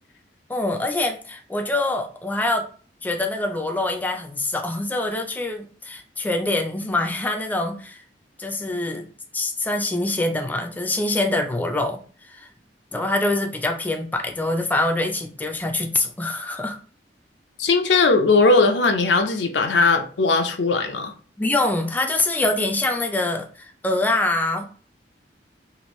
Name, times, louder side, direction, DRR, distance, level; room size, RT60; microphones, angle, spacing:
voice 1, 0.5-2.7 3.0-8.0 8.4-9.1 9.3-12.5 12.9-16.8 21.4-24.6, left 2 dB, 10° left, 4 dB, 0.3 m, -24 dB
voice 2, 17.6-21.1, left 3 dB, 90° left, 5 dB, 0.5 m, -19 dB
3.0 x 2.5 x 3.0 m, 0.41 s
head